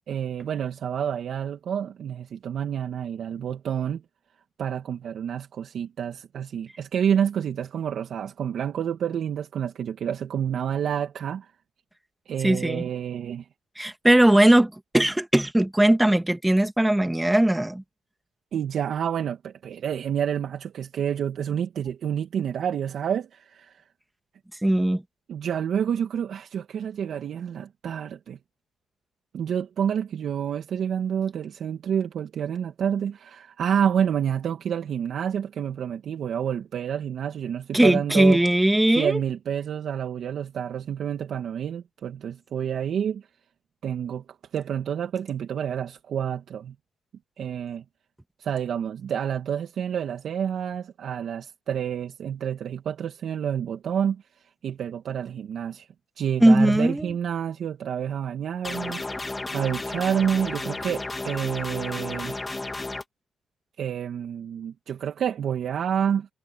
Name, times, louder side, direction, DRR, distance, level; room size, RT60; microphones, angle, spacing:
voice 1, 0.1-4.0 4.6-11.5 12.3-13.5 18.5-23.8 25.3-28.4 29.3-38.4 39.0-43.3 43.8-44.2 44.5-46.7 47.4-47.8 48.4-54.2 54.6-55.9 56.2-59.0 59.5-62.4 63.8-66.3, right 8 dB, 65° right, 2.1 m, -28 dB
voice 2, 12.4-12.9 13.8-17.8 24.6-25.0 37.7-39.2 56.4-57.1, right 1 dB, 10° right, 2.1 m, -19 dB
sound 1, 58.6-63.0, left 2 dB, 20° left, 2.8 m, -33 dB
cardioid pair, 90°, 0 cm